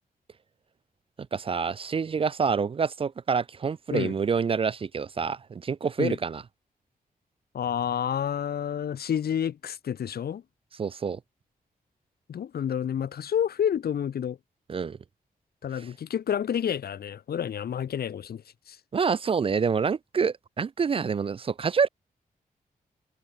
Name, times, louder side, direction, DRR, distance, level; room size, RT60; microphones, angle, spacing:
voice 1, 1.3-6.4 10.8-11.2 14.7-15.0 18.9-21.9, right 6 dB, 35° right, 0.4 m, -27 dB
voice 2, 7.5-10.4 12.3-14.4 15.6-18.8, left 9 dB, 80° left, 1.7 m, -29 dB
wide cardioid pair, 135°, 16 cm